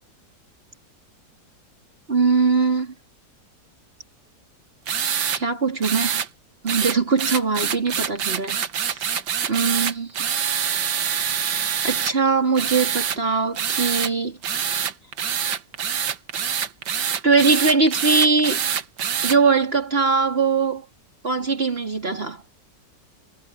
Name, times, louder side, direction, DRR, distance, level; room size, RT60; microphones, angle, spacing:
voice 1, 2.1-2.9 5.4-6.2 6.6-9.0 9.5-10.1 11.8-14.4 17.2-18.6 19.2-20.8 21.2-22.4, right 4 dB, 30° right, 3.6 m, -21 dB
sound 1, 4.9-5.4 5.8-6.3 6.7-12.1 12.5-13.2 13.5-14.1 14.4-19.4, right 8 dB, 65° right, 1.8 m, -25 dB
omnidirectional pair, 2.0 m